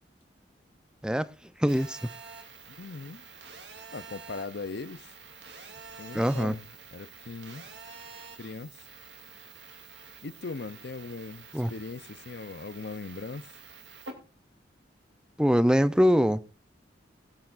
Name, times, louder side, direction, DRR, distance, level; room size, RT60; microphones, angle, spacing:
voice 1, 1.6-2.1 6.1-6.6 11.5-11.7 15.4-16.4, equal, 5° right, 0.7 m, -23 dB
Telephone, 1.7-14.1, right 5 dB, 90° right, 3.0 m, -48 dB
voice 2, 2.7-3.2 3.9-5.1 6.0-7.7 8.4-8.8 10.2-13.5, left 3 dB, 65° left, 0.7 m, -39 dB
23.0 x 8.3 x 2.6 m
head